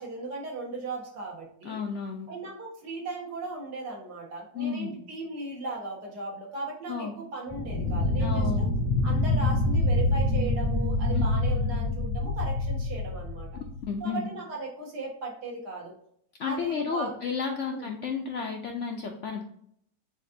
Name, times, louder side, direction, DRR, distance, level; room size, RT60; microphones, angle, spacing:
voice 1, 0.0-1.8 2.3-8.7 9.0-13.5 14.0-15.9 16.4-17.1 17.7-17.9, right 2 dB, 75° right, -3 dB, 2.1 m, -37 dB
voice 2, 1.6-2.3 4.5-4.9 6.9-7.1 8.2-8.7 11.1-11.2 13.9-14.3 16.4-19.4, left 5 dB, 65° left, 2 dB, 0.7 m, -32 dB
sound 1, 7.5-14.0, left 2 dB, 15° left, 0.6 m, -26 dB
7.2 x 2.7 x 2.6 m, 0.67 s
omnidirectional pair, 1.8 m